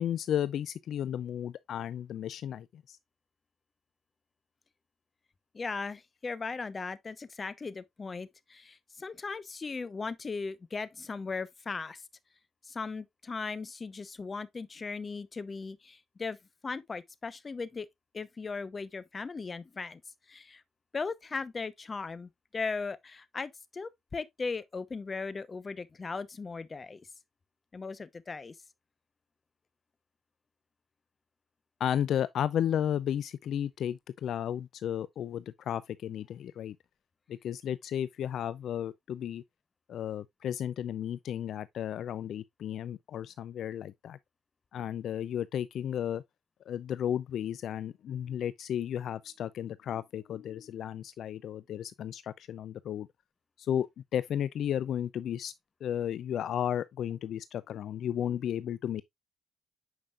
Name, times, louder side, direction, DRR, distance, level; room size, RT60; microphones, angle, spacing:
voice 1, 0.0-3.0 31.8-36.8 37.3-39.4 39.9-44.2 44.7-46.2 46.7-53.1 53.6-55.5 55.8-59.0, left 10 dB, 70° left, 0.3 m, -33 dB
voice 2, 5.5-12.0 12.7-16.4 16.6-17.9 18.1-20.0 20.3-20.6 20.9-27.0 27.7-28.5, left 4 dB, 30° left, 0.8 m, -38 dB
8.8 x 5.3 x 2.3 m
cardioid pair, 90°, 0 cm